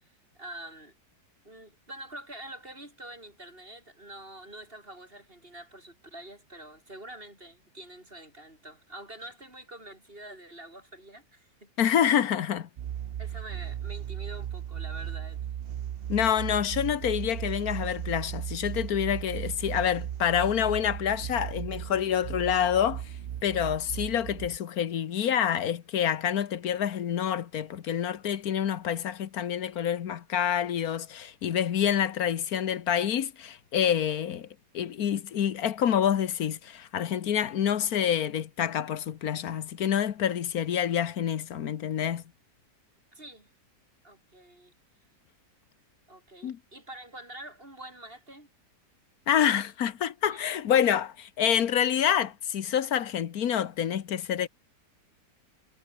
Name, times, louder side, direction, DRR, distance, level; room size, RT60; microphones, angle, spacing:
voice 1, 0.3-1.0 1.4-11.7 13.2-15.4 43.1-43.5 44.0-44.7 46.1-48.5 50.3-50.5, right 1 dB, 35° right, 7.6 m, -46 dB
voice 2, 11.8-12.7 16.1-23.0 23.4-34.5 34.7-42.2 46.4-46.6 49.3-54.5, left 9 dB, 65° left, 1.5 m, -27 dB
sound 1, 12.8-24.6, right 10 dB, 70° right, 0.5 m, -36 dB
omnidirectional pair, 1.7 m